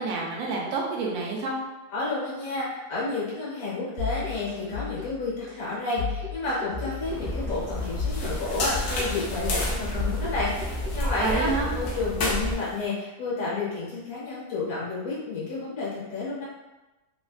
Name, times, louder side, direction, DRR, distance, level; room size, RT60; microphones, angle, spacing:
voice 1, 0.0-1.6 11.2-11.7, right 4 dB, 70° right, -1 dB, 0.9 m, -28 dB
voice 2, 1.9-16.4, left 3 dB, 60° left, -7 dB, 1.4 m, -31 dB
sound 1, 4.0-12.0, left 4 dB, 55° right, 0.8 m, -35 dB
sound 2, 7.0-12.5, equal, 25° left, 0.4 m, -32 dB
sound 3, 7.8-12.8, left 2 dB, 80° left, 1.1 m, -34 dB
3.1 x 2.1 x 2.4 m, 1.1 s
omnidirectional pair, 1.7 m